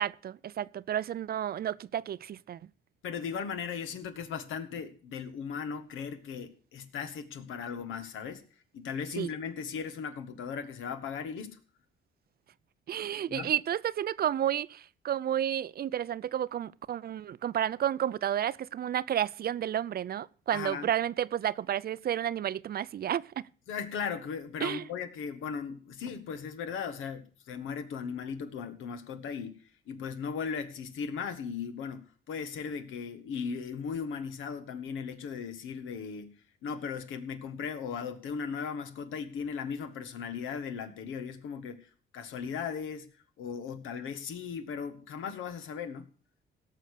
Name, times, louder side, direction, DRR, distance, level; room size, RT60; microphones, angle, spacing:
voice 1, 0.0-2.6 9.2-9.3 12.9-23.4 24.6-24.8, right 10 dB, 50° right, 0.5 m, -31 dB
voice 2, 3.0-8.4 8.7-11.6 13.3-13.5 20.5-20.9 23.7-29.6 29.9-43.1 43.4-46.1, left 6 dB, 85° left, 1.6 m, -37 dB
17.0 x 6.4 x 6.6 m
cardioid pair, 90°, 20 cm